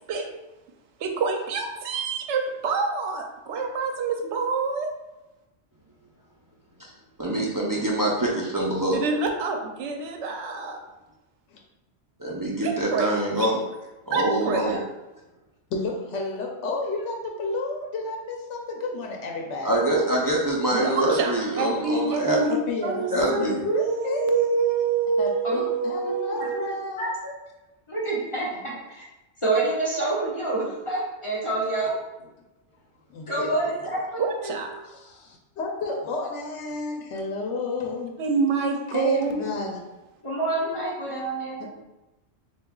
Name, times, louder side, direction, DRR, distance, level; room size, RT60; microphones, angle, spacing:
voice 1, 1.0-4.9 8.9-10.8 12.6-13.1 13.4-13.5 14.1-14.8 20.7-26.7 34.2-34.7 38.2-39.4, right 4 dB, 85° right, 3 dB, 0.9 m, -26 dB
voice 2, 7.2-9.0 12.2-13.6 14.1-14.8 19.6-22.4 23.1-23.6, right 1 dB, 30° right, -4 dB, 0.4 m, -25 dB
voice 3, 15.7-19.7 22.5-24.2 25.2-27.0 33.1-33.5 34.8-38.1 38.9-39.8 41.6-41.7, left 3 dB, 85° left, 1 dB, 1.0 m, -31 dB
voice 4, 26.0-26.5 27.0-27.1 27.9-29.0 29.4-31.9 33.3-34.0 34.4-34.6 40.2-41.7, right 2 dB, 30° left, -8 dB, 1.2 m, -27 dB
7.0 x 2.4 x 2.3 m, 1.0 s
omnidirectional pair, 1.2 m